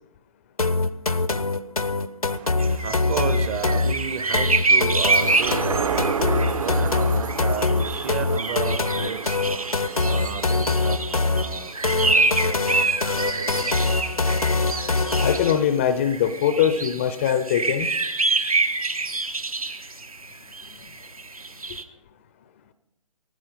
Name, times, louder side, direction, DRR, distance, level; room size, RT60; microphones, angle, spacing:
sound 1, 0.6-15.6, left 3 dB, 85° left, 0.8 m, -24 dB
voice 1, 2.3-13.7, right 8 dB, 25° right, 0.6 m, -33 dB
sound 2, 2.6-15.6 16.0-21.8, right 3 dB, 80° right, 1.3 m, -27 dB
sound 3, 5.1-11.9 12.3-12.4, right 5 dB, 60° right, 1.1 m, -31 dB
voice 2, 15.2-17.9, left 9 dB, 20° left, 0.5 m, -22 dB
18.5 x 15.5 x 3.9 m
figure-of-eight pair, 135°, 18 cm